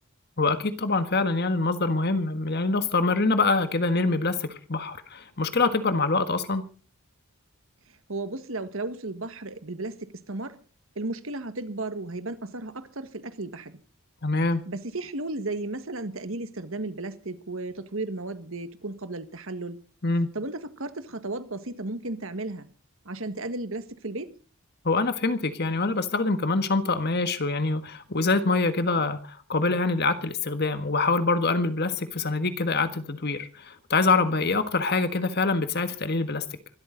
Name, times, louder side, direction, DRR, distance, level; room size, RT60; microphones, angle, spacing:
voice 1, 0.4-6.7 14.2-14.6 20.0-20.3 24.8-36.4, left 3 dB, 45° left, 1.6 m, -25 dB
voice 2, 7.9-10.6 10.9-13.8 14.7-19.8 20.3-22.7 23.0-24.3 34.3-34.6, right 2 dB, 65° right, 1.7 m, -34 dB
25.5 x 13.0 x 3.9 m
head